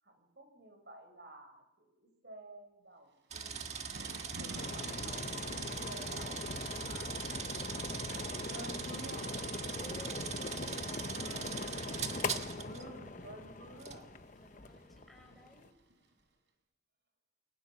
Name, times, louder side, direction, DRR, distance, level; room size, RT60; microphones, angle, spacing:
voice 1, 0.0-3.7 4.4-7.3 8.5-9.3 10.8-11.7 12.4-14.1, right 1 dB, 65° right, 5 dB, 5.7 m, -52 dB
Thunder / Rain, 3.2-16.2, equal, 85° right, 4.3 m, -56 dB
sound 1, 3.3-12.8 13.8-14.0, right 6 dB, 35° right, 1.5 m, -41 dB
sound 2, 4.5-15.7, left 3 dB, 45° left, 0.8 m, -42 dB
voice 2, 9.7-11.7 14.4-15.7, equal, ahead, 1 dB, 5.9 m, -55 dB
29.0 x 21.0 x 6.1 m, 0.93 s
head